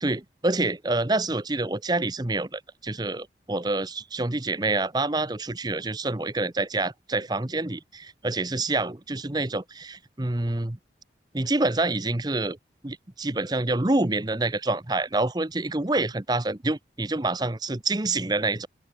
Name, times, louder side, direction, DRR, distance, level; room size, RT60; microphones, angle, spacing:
voice 1, 0.0-10.8 11.3-12.6 12.8-18.7, right 2 dB, 25° right, 0.9 m, -27 dB
open air
head